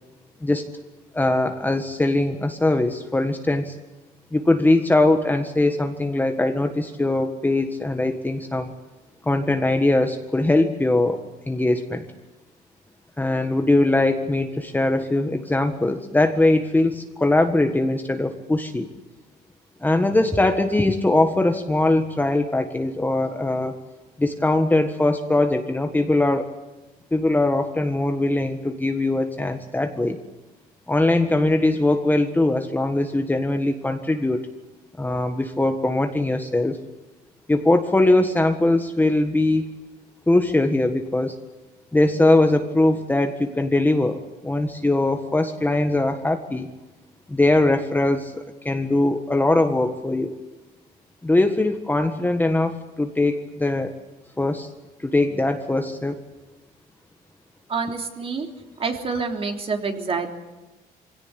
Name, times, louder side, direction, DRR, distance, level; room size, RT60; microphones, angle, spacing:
voice 1, 1.1-3.7 4.3-8.7 9.2-12.0 13.2-18.9 19.8-23.8 24.2-26.5 27.1-30.2 30.9-34.5 35.0-36.8 37.5-39.6 40.3-41.5 41.9-46.7 47.3-50.4 51.2-53.9 54.4-54.7 55.0-56.2, left 2 dB, 10° left, 6 dB, 1.6 m, -21 dB
voice 2, 57.7-58.5 58.8-60.3, right 4 dB, 35° right, 4 dB, 3.4 m, -27 dB
23.5 x 17.5 x 9.9 m, 1.1 s
cardioid pair, 110°, 17 cm